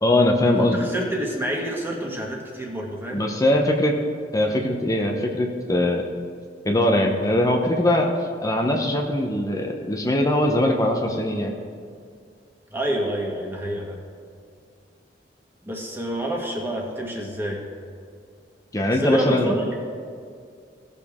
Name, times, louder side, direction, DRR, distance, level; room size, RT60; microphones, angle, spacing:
voice 1, 0.0-0.9 3.1-3.9 4.3-6.0 6.6-8.1 8.4-11.6 18.7-19.6, left 1 dB, 20° left, 2 dB, 0.8 m, -21 dB
voice 2, 0.6-3.2 12.7-14.0 15.7-17.6 19.0-19.7, right 1 dB, 15° right, -1 dB, 1.6 m, -28 dB
17.5 x 6.8 x 3.6 m, 2.2 s
head